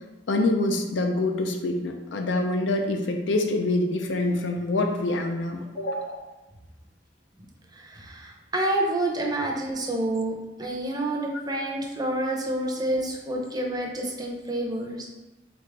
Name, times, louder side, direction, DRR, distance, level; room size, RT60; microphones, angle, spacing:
voice 1, 0.3-6.3 11.5-11.6 13.0-13.1, left 2 dB, 85° left, 4 dB, 0.5 m, -26 dB
voice 2, 7.7-10.3 10.6-15.1, right 1 dB, 20° right, 0 dB, 0.6 m, -28 dB
3.6 x 3.5 x 3.4 m, 1.1 s
head